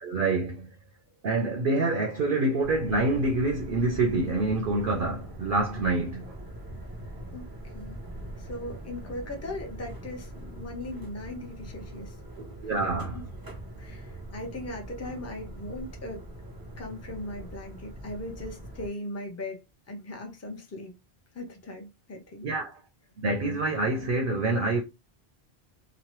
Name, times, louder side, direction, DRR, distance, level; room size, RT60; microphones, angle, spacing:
voice 1, 0.0-0.7 1.2-6.2 12.4-13.2 22.4-22.8 23.2-24.8, right 2 dB, 65° right, 0.7 m, -26 dB
sound 1, 2.6-18.9, right 1 dB, 25° right, 0.6 m, -42 dB
voice 2, 8.4-12.2 13.1-13.3 13.8-16.2 16.8-19.6 19.9-20.9 21.3-22.5, left 1 dB, 20° left, 0.5 m, -39 dB
3.0 x 2.1 x 2.9 m
omnidirectional pair, 1.1 m